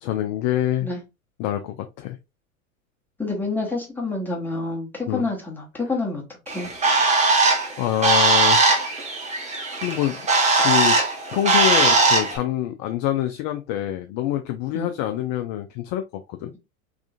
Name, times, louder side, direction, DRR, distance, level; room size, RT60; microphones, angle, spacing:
voice 1, 0.0-0.9 1.4-2.2 5.1-5.2 7.8-8.6 8.9-9.0 9.8-10.2 10.6-11.0 11.3-16.0 16.3-16.5, left 12 dB, 40° left, 0.5 m, -25 dB
voice 2, 3.2-6.7 14.7-14.9, left 3 dB, 5° left, 1.3 m, -28 dB
Bird, 6.5-12.4, right 3 dB, 15° right, 0.9 m, -19 dB
3.6 x 3.1 x 2.4 m
hypercardioid pair, 95°, 42 cm